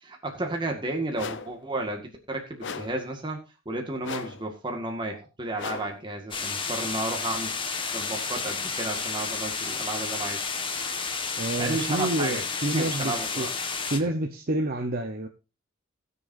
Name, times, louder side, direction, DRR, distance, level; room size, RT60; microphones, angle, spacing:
voice 1, 0.0-3.4 3.7-7.5 7.9-10.4 11.6-13.5, right 2 dB, 25° right, 2 dB, 1.8 m, -32 dB
sound 1, 1.1-1.6 2.6-3.1 4.0-4.5 5.6-6.0, left 5 dB, 60° left, 0.8 m, -37 dB
sound 2, 6.3-14.0, left 5 dB, 25° left, 1.5 m, -31 dB
voice 2, 11.4-13.5 13.9-15.3, right 1 dB, 45° right, 4 dB, 1.0 m, -28 dB
20.5 x 7.0 x 2.7 m, 0.30 s
head